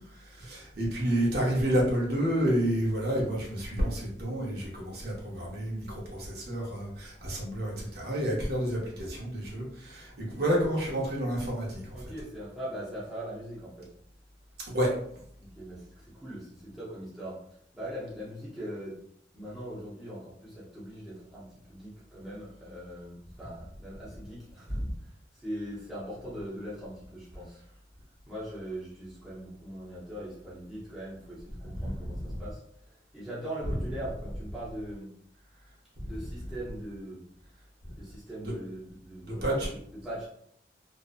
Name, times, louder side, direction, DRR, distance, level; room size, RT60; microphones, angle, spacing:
voice 1, 0.2-11.8 14.7-14.9 32.2-32.4 38.4-38.5 39.2-39.7, equal, 60° right, -4 dB, 0.7 m, -29 dB
voice 2, 11.9-13.9 15.4-19.0 19.3-27.6 28.3-35.1 36.0-37.2 37.9-40.3, equal, ahead, -10 dB, 0.7 m, -41 dB
2.5 x 2.0 x 2.4 m, 0.68 s
head